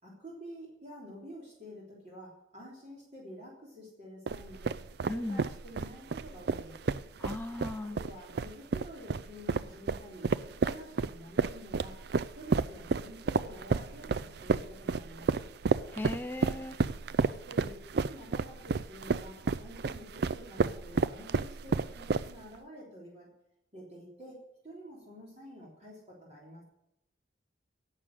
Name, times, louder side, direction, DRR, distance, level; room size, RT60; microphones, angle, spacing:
voice 1, 0.0-6.9 7.8-10.3 10.6-12.0 12.4-15.5 17.2-23.3 23.7-24.4 24.6-26.6, equal, 35° right, -4 dB, 3.6 m, -49 dB
sound 1, 4.3-22.6, right 4 dB, 60° right, 0.4 m, -31 dB
voice 2, 5.1-5.4 7.2-8.0 15.9-16.8, left 2 dB, 10° left, 7 dB, 0.4 m, -37 dB
11.5 x 7.6 x 9.9 m, 0.83 s
head